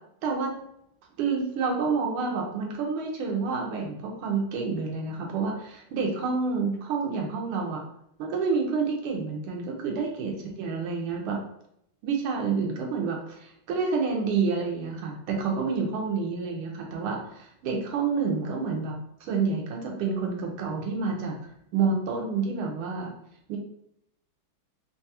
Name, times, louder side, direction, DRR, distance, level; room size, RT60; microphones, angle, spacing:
voice 1, 0.2-0.6 1.2-7.8 8.2-11.4 12.0-18.9 19.2-21.4 21.7-23.1 23.5-23.6, right 4 dB, 85° right, 0 dB, 1.5 m, -28 dB
3.8 x 2.3 x 2.7 m, 0.74 s
omnidirectional pair, 2.3 m